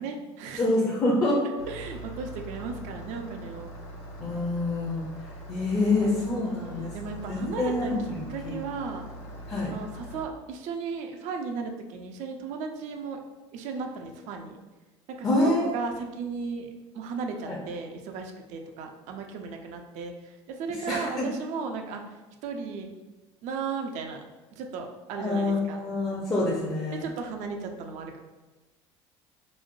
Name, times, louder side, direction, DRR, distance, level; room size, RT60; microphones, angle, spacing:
voice 1, 0.0-0.7 1.7-3.7 5.9-7.9 8.3-9.1 9.7-13.2 13.5-14.6 15.2-16.7 16.9-22.0 22.4-22.9 23.4-24.2 24.5-25.8 26.9-28.2, right 5 dB, 55° right, 4 dB, 0.4 m, -35 dB
voice 2, 0.6-1.4 4.2-7.0 7.3-8.5 9.5-9.7 15.2-15.8 17.4-17.6 20.9-21.3 25.2-27.0, left 2 dB, 25° left, -4 dB, 0.6 m, -27 dB
Engine starting, 1.6-10.3, right 1 dB, 80° left, 0.6 m, -42 dB
3.0 x 2.1 x 2.5 m, 1.2 s
hypercardioid pair, 70°, 14 cm